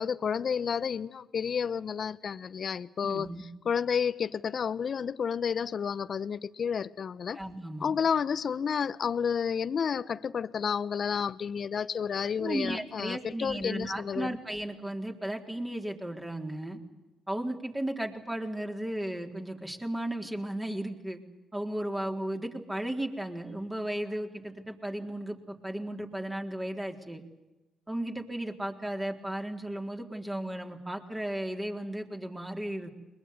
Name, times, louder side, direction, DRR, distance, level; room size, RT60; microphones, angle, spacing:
voice 1, 0.0-7.4 7.8-14.4, left 7 dB, 55° left, 16 dB, 0.9 m, -31 dB
voice 2, 3.0-3.4 7.4-8.0 12.4-16.8 17.3-21.2 21.5-27.2 27.9-32.9, right 1 dB, 15° right, 3 dB, 3.9 m, -35 dB
21.5 x 21.5 x 9.6 m, 1.0 s
supercardioid pair, 55°, 0 cm